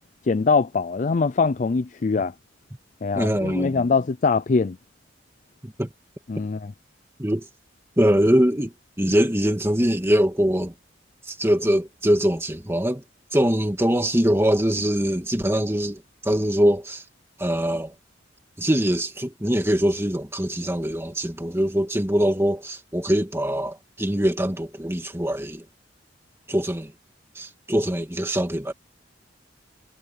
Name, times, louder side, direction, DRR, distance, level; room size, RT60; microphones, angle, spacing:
voice 1, 0.3-2.3 3.0-4.8 6.3-6.7, left 4 dB, 40° left, 0.4 m, -22 dB
voice 2, 3.1-3.9 5.6-5.9 7.2-7.5 8.0-10.7 11.3-13.0 13.3-17.0 17.4-17.9 18.6-25.7 26.5-26.9 27.4-28.7, equal, 15° right, 2.2 m, -23 dB
head